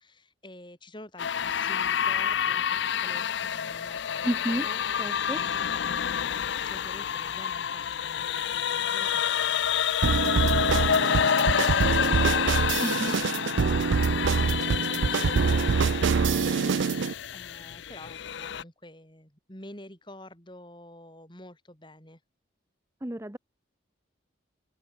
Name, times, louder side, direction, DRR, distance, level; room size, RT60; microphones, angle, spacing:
voice 1, 0.0-13.6 14.3-22.2, left 1 dB, 25° left, 6.3 m, -49 dB
sound 1, 1.2-18.6, left 8 dB, 65° left, 0.5 m, -28 dB
voice 2, 4.2-4.7 5.0-5.4 12.8-13.2 23.0-23.4, right 1 dB, 15° right, 0.9 m, -31 dB
sound 2, 10.0-17.1, right 5 dB, 75° right, 0.4 m, -25 dB
head